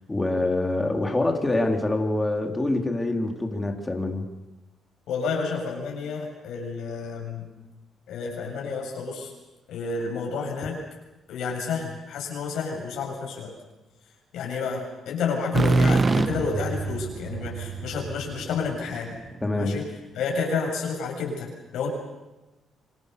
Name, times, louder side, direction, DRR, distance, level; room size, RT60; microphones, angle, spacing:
voice 1, 0.1-4.3 19.4-19.8, left 2 dB, 15° left, 3 dB, 3.8 m, -25 dB
voice 2, 5.1-7.5 8.1-9.3 9.7-10.8 11.3-13.5 14.3-19.1 19.5-19.9 20.1-21.9, left 5 dB, 80° left, 0 dB, 7.6 m, -30 dB
sound 1, 15.5-19.3, right 3 dB, 35° right, 1.1 m, -25 dB
27.5 x 25.0 x 6.9 m, 1.1 s
cardioid pair, 90°, 0 cm